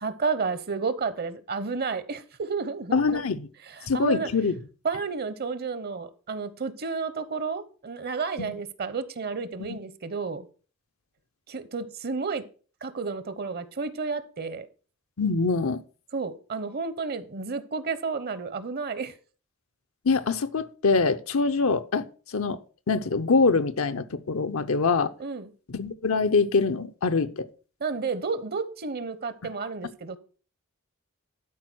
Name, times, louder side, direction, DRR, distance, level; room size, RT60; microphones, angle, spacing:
voice 1, 0.0-3.2 3.7-4.3 4.8-10.5 11.5-12.4 12.8-14.7 16.1-19.1 25.2-25.5 27.8-30.2, right 4 dB, 50° right, 0.9 m, -31 dB
voice 2, 2.9-3.5 3.9-4.6 8.4-8.5 9.6-9.8 15.2-15.8 20.0-22.6 22.9-25.1 25.7-27.5, left 4 dB, 70° left, 0.7 m, -24 dB
12.0 x 4.8 x 6.1 m
head